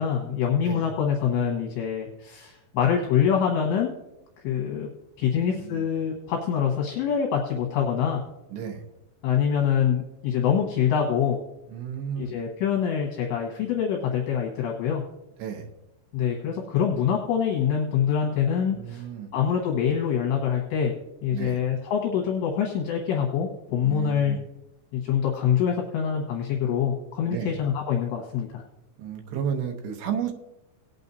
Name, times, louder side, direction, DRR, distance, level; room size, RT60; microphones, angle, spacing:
voice 1, 0.0-3.9 4.4-4.9 5.2-8.2 9.2-11.4 12.2-15.0 16.1-19.0 19.3-20.9 21.2-24.4 24.9-28.6, left 8 dB, 75° left, -1 dB, 3.2 m, -25 dB
voice 2, 5.3-5.9 8.5-8.8 11.7-12.4 15.4-15.7 18.7-19.3 21.3-21.6 23.8-24.4 27.3-27.6 29.0-30.3, right 8 dB, 75° right, 4 dB, 2.8 m, -33 dB
19.0 x 8.7 x 2.7 m, 0.94 s
omnidirectional pair, 5.5 m